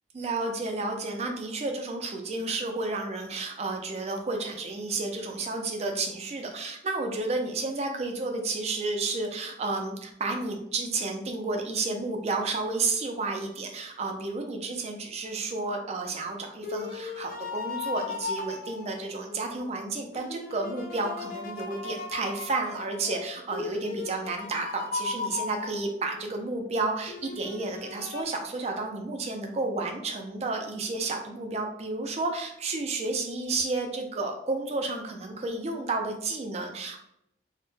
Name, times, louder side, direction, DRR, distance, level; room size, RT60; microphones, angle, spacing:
voice 1, 0.1-37.0, right 3 dB, 35° right, 4 dB, 0.3 m, -31 dB
sound 1, 16.1-19.6 20.1-26.3 27.1-28.2, left 4 dB, 45° left, 0.3 m, -37 dB
2.1 x 2.0 x 3.0 m, 0.76 s
head